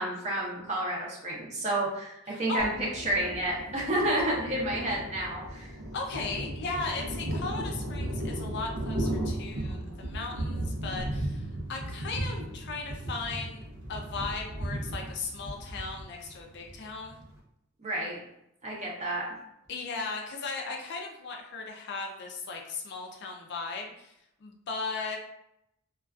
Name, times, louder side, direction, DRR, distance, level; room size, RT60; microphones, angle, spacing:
voice 1, 0.0-5.7 17.8-18.2 18.6-19.3, right 1 dB, 30° right, -4 dB, 0.7 m, -30 dB
voice 2, 2.3-2.7 5.9-13.6 13.9-17.2 19.7-24.1 24.4-25.2, left 4 dB, 50° left, 2 dB, 0.4 m, -37 dB
Thunder, 2.6-17.4, right 1 dB, 80° right, 0.6 m, -36 dB
2.4 x 2.3 x 2.3 m, 0.80 s
head